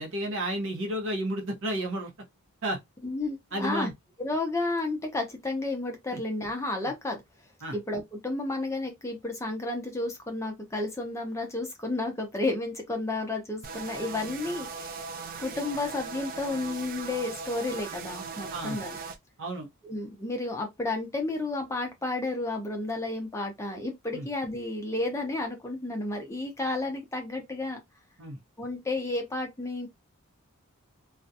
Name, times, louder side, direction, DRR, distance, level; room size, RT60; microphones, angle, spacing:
voice 1, 0.0-2.1 2.6-2.8 3.5-3.9 6.1-6.2 7.6-7.8 18.5-18.8 19.4-19.7 24.1-24.3 28.2-28.4, right 1 dB, 60° right, 0.8 m, -32 dB
voice 2, 3.0-3.9 4.2-7.2 7.7-15.1 15.4-19.0 19.8-27.8 28.6-29.9, left 2 dB, 15° left, 0.5 m, -32 dB
sound 1, 13.6-19.2, right 5 dB, 40° right, 0.4 m, -39 dB
2.4 x 2.2 x 2.6 m
head